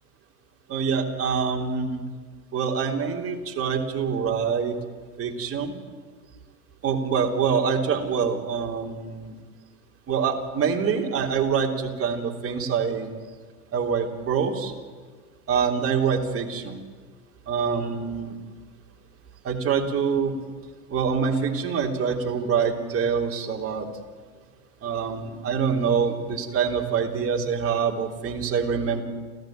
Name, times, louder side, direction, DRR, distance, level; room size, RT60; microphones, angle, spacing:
voice 1, 0.7-2.0 2.5-4.8 5.2-5.7 6.8-9.3 10.1-13.1 13.7-14.7 15.5-16.8 17.5-18.4 19.4-20.4 20.9-23.9 24.8-29.0, right 6 dB, 30° right, 1 dB, 3.6 m, -25 dB
29.0 x 14.5 x 9.2 m, 1.5 s
hypercardioid pair, 100°, 48 cm